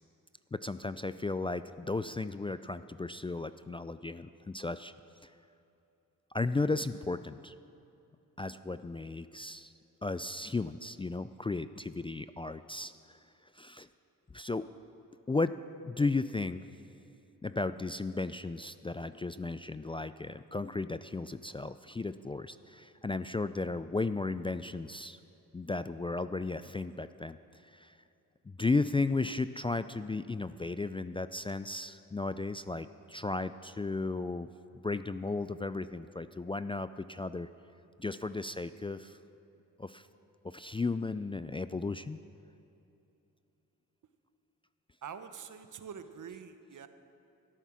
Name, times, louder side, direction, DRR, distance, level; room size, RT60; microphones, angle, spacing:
voice 1, 0.5-4.9 5.2-5.3 6.3-7.5 8.4-9.7 10.0-13.2 13.5-13.9 14.3-14.7 15.3-15.6 15.9-16.6 17.4-25.2 25.5-28.0 28.5-34.5 34.7-37.5 38.0-39.2 39.8-40.1 40.4-42.2, left 3 dB, 15° left, 13 dB, 0.4 m, -35 dB
voice 2, 45.0-46.9, right 7 dB, 60° right, 9 dB, 1.0 m, -45 dB
13.0 x 12.5 x 6.2 m, 2.8 s
supercardioid pair, 55°, 34 cm